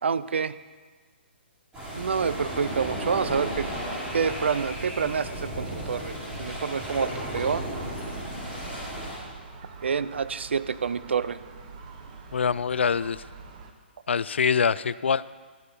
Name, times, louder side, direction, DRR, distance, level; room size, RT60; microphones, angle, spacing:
voice 1, 0.0-0.6 1.9-3.7 4.1-6.1 6.4-7.6 9.8-11.4, right 6 dB, 80° right, 16 dB, 0.5 m, -27 dB
sound 1, 1.7-9.2, right 1 dB, 15° right, 3.3 m, -34 dB
Gull seagull, 7.2-13.7, right 4 dB, 40° right, 1.2 m, -46 dB
voice 2, 12.3-13.2 14.1-15.3, left 6 dB, 85° left, 18 dB, 0.3 m, -24 dB
12.0 x 8.0 x 5.3 m, 1.5 s
hypercardioid pair, 145°, 6 cm